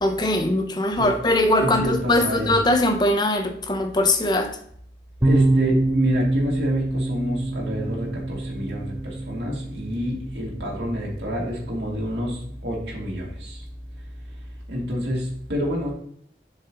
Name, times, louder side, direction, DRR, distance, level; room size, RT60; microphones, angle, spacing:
voice 1, 0.0-4.6, left 1 dB, 25° left, 6 dB, 0.8 m, -21 dB
voice 2, 1.6-2.5 5.2-13.6 14.7-15.9, equal, 85° right, -4 dB, 2.4 m, -28 dB
sound 1, 5.2-14.6, right 2 dB, 15° right, 0.6 m, -27 dB
7.4 x 6.5 x 3.0 m, 0.65 s
head